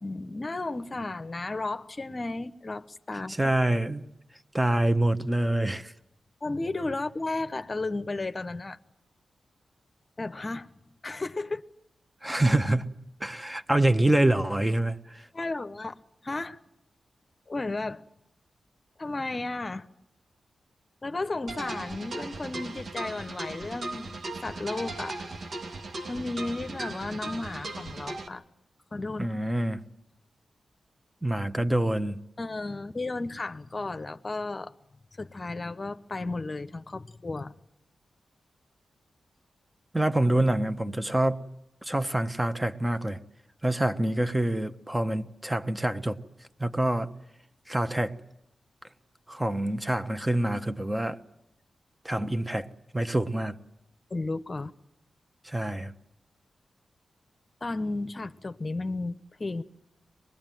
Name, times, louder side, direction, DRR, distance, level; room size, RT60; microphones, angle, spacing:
voice 1, 0.0-3.5 6.4-8.8 10.2-10.7 11.0-11.6 15.3-16.0 16.2-16.6 17.5-18.0 19.0-19.9 21.0-24.2 24.4-25.3 26.1-28.4 28.9-29.3 32.4-34.7 35.2-37.5 54.1-54.7 57.6-59.6, left 2 dB, 40° left, 0.9 m, -33 dB
voice 2, 3.3-4.0 4.5-5.9 12.2-12.9 13.2-15.3 29.2-29.8 31.2-32.2 39.9-41.4 41.8-43.2 43.6-46.2 46.6-47.1 47.7-48.1 49.3-51.2 52.0-52.7 52.9-53.6 55.4-55.9, right 1 dB, 15° right, 1.3 m, -26 dB
sound 1, 21.5-28.3, right 2 dB, 70° right, 2.4 m, -37 dB
23.5 x 21.0 x 9.3 m
cardioid pair, 55°, 0 cm